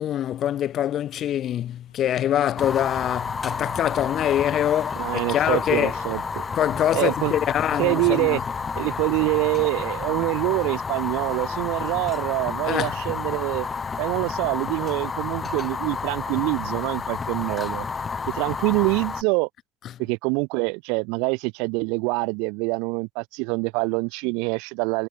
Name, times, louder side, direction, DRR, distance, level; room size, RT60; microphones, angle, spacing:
voice 1, 0.0-6.0 6.6-8.4 12.7-13.0, left 11 dB, 45° left, 0.4 m, -24 dB
sound 1, 1.9-18.5, left 8 dB, 75° left, 2.9 m, -52 dB
Fire, 2.6-19.2, left 5 dB, 25° left, 1.1 m, -30 dB
voice 2, 5.0-6.5 6.9-7.3 7.7-8.4 8.8-13.7 14.0-17.9 18.3-19.5 20.0-25.1, right 32 dB, 60° right, 0.8 m, -25 dB
figure-of-eight pair, 60°, 0 cm